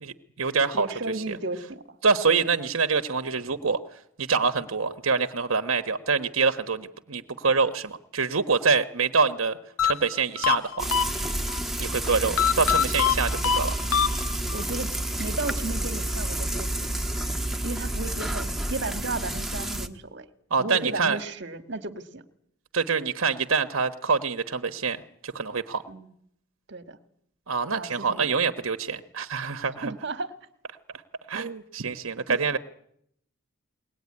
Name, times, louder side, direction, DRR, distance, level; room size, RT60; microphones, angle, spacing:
voice 1, 0.0-0.9 2.0-3.8 4.2-9.6 9.8-10.9 11.8-13.7 20.5-21.2 22.7-25.8 27.5-29.9 31.3-32.6, right 5 dB, 75° right, 9 dB, 1.2 m, -25 dB
voice 2, 0.7-2.0 2.3-2.4 12.2-12.4 14.5-16.9 17.6-20.3 20.6-22.2 25.9-26.1 26.7-27.0 27.7-28.3 29.8-30.3 31.3-31.5 32.3-32.4, right 2 dB, 55° right, 9 dB, 1.7 m, -34 dB
sound 1, 9.8-11.6 12.4-14.6, left 8 dB, 90° left, 1.3 m, -25 dB
Frying (food), 10.8-19.9, right 1 dB, ahead, 1.3 m, -30 dB
22.5 x 19.0 x 9.7 m, 0.71 s
head